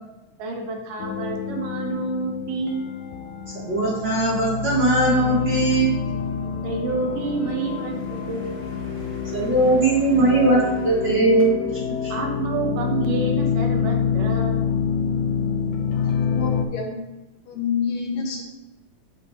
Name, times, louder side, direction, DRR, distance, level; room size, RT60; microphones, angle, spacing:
voice 1, 0.4-2.9 6.6-8.5 12.1-14.6, right 3 dB, 80° right, 2 dB, 2.6 m, -28 dB
sound 1, 1.0-16.7, left 7 dB, 80° left, 1.6 m, -27 dB
voice 2, 3.6-5.9 9.3-11.6, right 2 dB, 50° right, -5 dB, 1.4 m, -19 dB
voice 3, 15.9-17.0 17.5-18.4, left 6 dB, 65° left, 0 dB, 2.1 m, -28 dB
8.0 x 7.4 x 3.0 m, 1.0 s
omnidirectional pair, 3.8 m